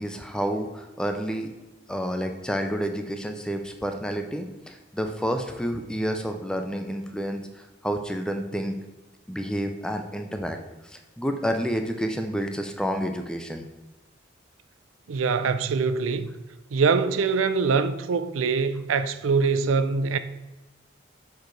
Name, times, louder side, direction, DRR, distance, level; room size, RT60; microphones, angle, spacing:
voice 1, 0.0-1.5 1.9-8.8 9.3-10.6 10.8-13.7, equal, 5° left, 0.5 m, -29 dB
voice 2, 15.1-16.3 16.7-20.2, right 5 dB, 90° right, 0.5 m, -23 dB
7.2 x 4.7 x 4.6 m
head